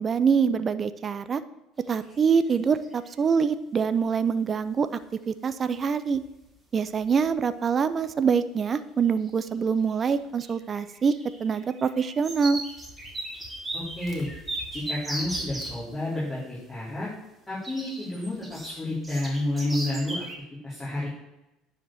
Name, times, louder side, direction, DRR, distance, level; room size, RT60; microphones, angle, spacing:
voice 1, 0.0-1.4 1.9-4.9 5.3-6.2 6.7-11.1 11.4-12.6, right 6 dB, 30° right, 12 dB, 0.6 m, -25 dB
sound 1, 2.1-2.2 2.5-3.1 5.0-5.1 5.8-5.9 6.1-6.5 6.8-7.3 7.9-8.0 9.1-9.5 9.8-15.8 17.6-20.4, right 1 dB, 10° right, 2.4 m, -37 dB
voice 2, 13.7-14.3 14.7-17.1 17.5-20.2 20.6-21.1, left 1 dB, 15° left, -10 dB, 4.0 m, -30 dB
9.7 x 5.2 x 7.6 m, 0.95 s
supercardioid pair, 115°, 0 cm